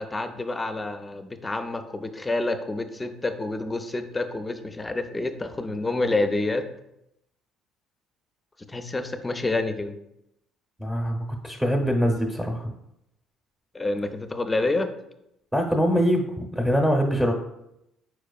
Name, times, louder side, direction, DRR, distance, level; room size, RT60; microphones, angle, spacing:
voice 1, 0.0-6.7 8.7-9.9 13.7-14.9, left 2 dB, 20° left, 9 dB, 0.5 m, -28 dB
voice 2, 10.8-12.7 15.5-17.3, equal, 10° right, 0 dB, 0.8 m, -23 dB
4.8 x 4.5 x 2.3 m, 0.83 s
hypercardioid pair, 65°, 0 cm